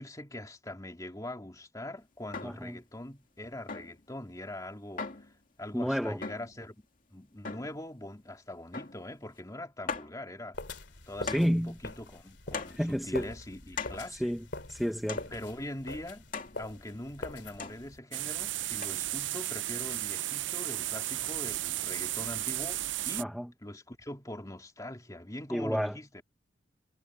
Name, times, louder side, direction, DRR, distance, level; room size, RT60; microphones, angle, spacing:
voice 1, 0.0-5.3 5.6-6.8 7.1-10.6 11.1-14.3 15.3-16.2 16.6-23.3 23.6-26.2, left 1 dB, 20° left, 2.7 m, -42 dB
sound 1, 2.3-2.7 3.7-4.0 5.0-5.3 6.2-6.6 7.4-7.8 8.7-9.1 9.4-9.5 9.9-10.2 11.3-11.6 12.5-12.9 13.8-14.1 15.1-15.4 16.3-16.6 17.6-17.9 18.8-18.9, left 4 dB, 50° left, 2.4 m, -39 dB
voice 2, 2.4-2.8 5.7-6.2 11.2-11.8 12.8-13.3 14.2-15.3 23.2-23.5 25.5-26.0, equal, ahead, 0.9 m, -30 dB
sound 2, 10.5-18.0, left 2 dB, 75° left, 2.6 m, -44 dB
sound 3, 18.1-23.2, right 15 dB, 90° right, 0.5 m, -34 dB
head